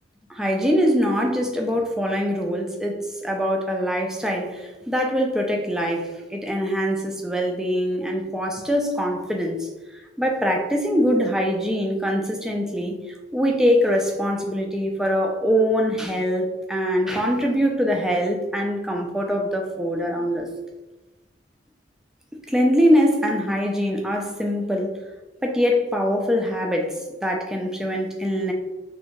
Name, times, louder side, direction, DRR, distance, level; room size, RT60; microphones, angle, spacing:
voice 1, 0.3-9.7 10.2-13.0 13.3-20.5 22.5-25.0 25.4-28.5, equal, 5° right, 1 dB, 0.3 m, -23 dB
3.2 x 2.7 x 2.9 m, 1.1 s
head